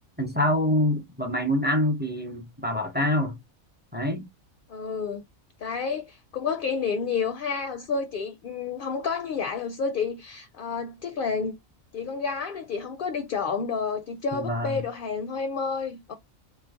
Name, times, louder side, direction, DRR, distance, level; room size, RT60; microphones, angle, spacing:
voice 1, 0.2-3.4 3.9-4.3 14.3-14.8, left 1 dB, 15° right, 0.4 m, -26 dB
voice 2, 4.7-5.2 5.6-11.5 11.9-16.1, left 5 dB, 65° left, 0.5 m, -30 dB
3.2 x 2.1 x 3.4 m
omnidirectional pair, 1.4 m